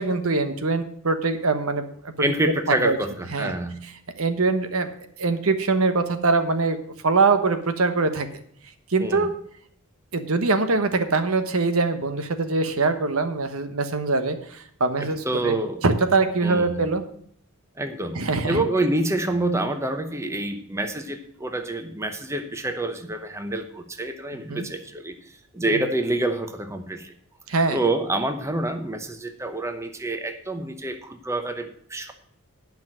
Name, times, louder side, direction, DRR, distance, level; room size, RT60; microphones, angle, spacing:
voice 1, 0.0-2.1 2.7-3.0 3.3-3.5 4.2-4.9 5.2-6.8 7.0-8.4 8.9-9.3 10.1-15.5 15.8-17.0 18.1-18.6 24.5-24.7 25.7-25.8 27.5-27.8, right 3 dB, 75° right, 9 dB, 1.2 m, -23 dB
voice 2, 2.2-3.8 9.0-9.3 15.0-15.8 16.4-16.9 17.8-25.2 25.5-27.1 27.7-32.1, right 2 dB, 15° right, 7 dB, 0.8 m, -27 dB
10.0 x 5.9 x 7.5 m, 0.64 s
head